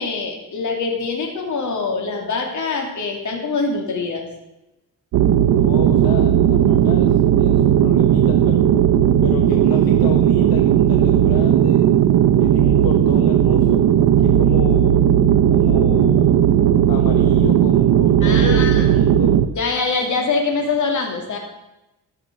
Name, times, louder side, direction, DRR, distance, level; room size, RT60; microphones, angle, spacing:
voice 1, 0.0-4.2 18.2-18.9 19.5-21.4, left 4 dB, 55° left, 2 dB, 2.8 m, -24 dB
sound 1, 5.1-19.5, right 10 dB, 90° right, 0.8 m, -15 dB
voice 2, 5.5-8.7 9.2-11.8 12.4-13.8 14.2-14.9 15.5-16.4 16.9-19.3, left 8 dB, 75° left, 4 dB, 1.1 m, -31 dB
14.5 x 6.6 x 6.3 m, 0.95 s
cardioid pair, 115°, 35 cm